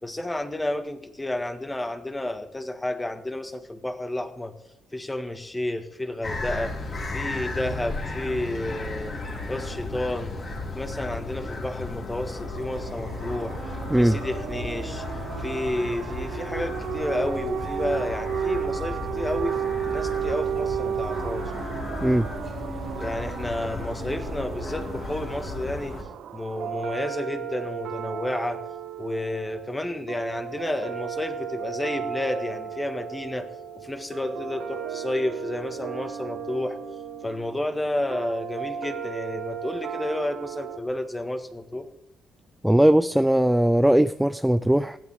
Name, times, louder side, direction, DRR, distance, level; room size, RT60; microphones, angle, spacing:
voice 1, 0.0-4.5 4.9-6.8 7.1-9.2 9.5-10.4 10.7-13.6 14.0-15.1 15.4-19.6 19.9-21.5 22.7-26.0 26.3-28.6 29.0-33.5 33.8-36.8 37.2-41.9, left 1 dB, 15° left, 8 dB, 1.8 m, -31 dB
sound 1, 6.2-26.0, left 2 dB, 45° left, 4.9 m, -34 dB
sound 2, 12.3-27.0, right 9 dB, 70° right, 0.7 m, -33 dB
sound 3, 26.5-40.8, right 8 dB, 85° right, 1.9 m, -35 dB
voice 2, 42.6-45.0, right 1 dB, 5° right, 12 dB, 0.5 m, -19 dB
20.0 x 14.5 x 3.7 m, 0.82 s
cardioid pair, 90°, 0 cm